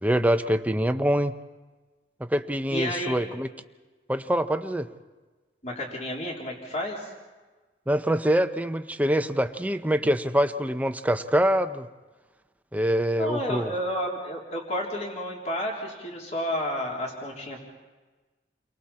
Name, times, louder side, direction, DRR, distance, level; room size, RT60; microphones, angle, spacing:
voice 1, 0.0-1.3 2.2-3.5 4.1-4.9 7.9-11.9 12.7-13.7, equal, 10° right, 9 dB, 0.7 m, -24 dB
voice 2, 2.7-3.2 5.6-7.1 13.2-17.6, left 1 dB, 40° left, -2 dB, 3.5 m, -31 dB
29.5 x 23.5 x 4.3 m, 1.3 s
head